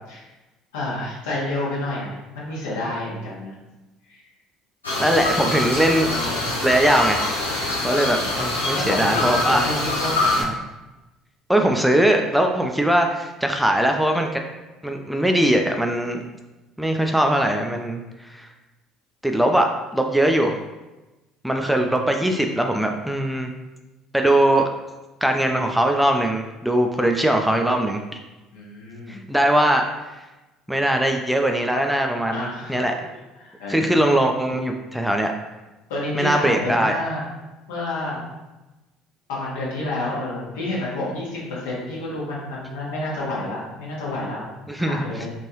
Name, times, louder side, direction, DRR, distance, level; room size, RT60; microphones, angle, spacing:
voice 1, 0.7-3.5 4.1-4.2 6.0-6.5 8.7-10.3 21.8-22.3 28.5-29.2 32.3-32.8 33.4-34.0 35.9-37.2 37.7-38.2 39.3-44.4 44.8-45.3, left 1 dB, 75° left, -6 dB, 1.1 m, -29 dB
sound 1, 4.8-10.4, left 2 dB, 90° left, 0.6 m, -24 dB
voice 2, 5.0-6.1 6.6-7.3 7.8-9.7 10.4-10.5 11.5-14.4 14.8-16.2 16.8-18.5 19.2-20.6 21.4-23.5 24.1-24.7 25.2-28.0 29.1-30.1 30.7-32.9 33.7-35.3 36.1-36.9 44.7-45.3, right 1 dB, ahead, 3 dB, 0.3 m, -21 dB
3.2 x 2.5 x 2.9 m, 1.1 s
figure-of-eight pair, 60°, 0 cm